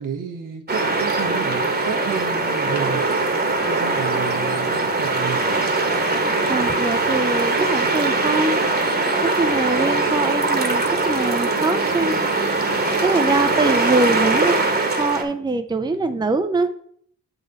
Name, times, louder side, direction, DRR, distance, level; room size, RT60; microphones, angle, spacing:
voice 1, 0.0-5.5 15.8-16.2, right 6 dB, 75° right, 3 dB, 1.2 m, -32 dB
sound 1, 0.7-15.2, right 3 dB, 30° right, 1.2 m, -21 dB
voice 2, 6.5-8.6 9.2-12.2 13.0-14.6 15.0-16.7, right 3 dB, 15° right, 8 dB, 0.5 m, -23 dB
7.5 x 4.0 x 4.0 m, 0.62 s
cardioid pair, 55°, 32 cm